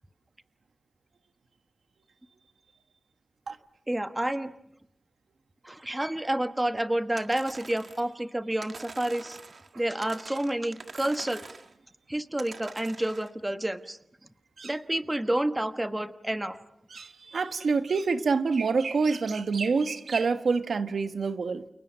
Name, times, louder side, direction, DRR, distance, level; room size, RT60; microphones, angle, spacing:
voice 1, 3.9-4.5 5.6-9.4 9.7-11.5 12.1-14.0 14.6-16.6, right 1 dB, 15° right, 1.2 m, -29 dB
sound 1, 7.2-8.1 8.6-9.7 10.0-11.7 12.4-13.3, right 4 dB, 55° right, 1.8 m, -45 dB
voice 2, 16.9-21.6, right 4 dB, 75° right, 1.3 m, -27 dB
29.5 x 29.0 x 6.4 m
wide cardioid pair, 135°, 0 cm